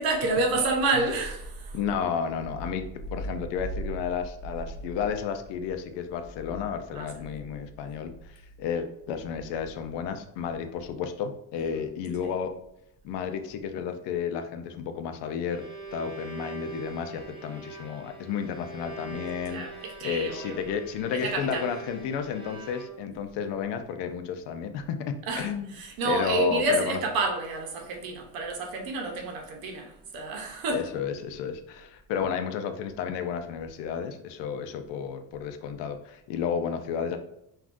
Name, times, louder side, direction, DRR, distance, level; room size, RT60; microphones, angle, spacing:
voice 1, 0.0-1.8 6.9-7.3 11.6-11.8 12.2-12.3 19.5-20.6 21.1-21.6 25.3-30.9, right 3 dB, 60° right, 0.8 m, -29 dB
voice 2, 1.7-2.9 3.1-12.5 13.0-15.6 15.9-25.8 26.0-27.0 30.7-37.2, left 7 dB, 85° left, 0.6 m, -32 dB
Bowed string instrument, 15.5-23.3, right 3 dB, 15° right, 0.4 m, -43 dB
3.5 x 2.4 x 2.5 m
cardioid pair, 170°, 41 cm